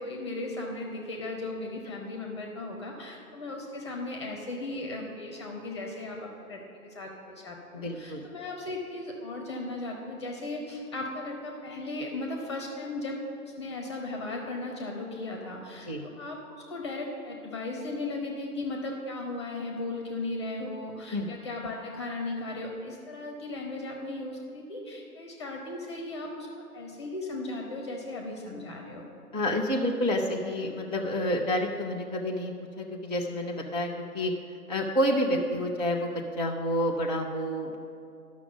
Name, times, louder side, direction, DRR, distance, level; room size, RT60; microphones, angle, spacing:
voice 1, 0.0-13.2 13.4-26.5 26.7-29.1 35.5-35.6, left 2 dB, 20° left, 1 dB, 0.8 m, -36 dB
voice 2, 7.7-8.3 15.9-16.0 21.1-21.3 29.3-34.3 34.7-37.8, equal, 30° right, -1 dB, 0.4 m, -29 dB
11.5 x 6.0 x 7.0 m, 2.5 s
figure-of-eight pair, 140°, 46 cm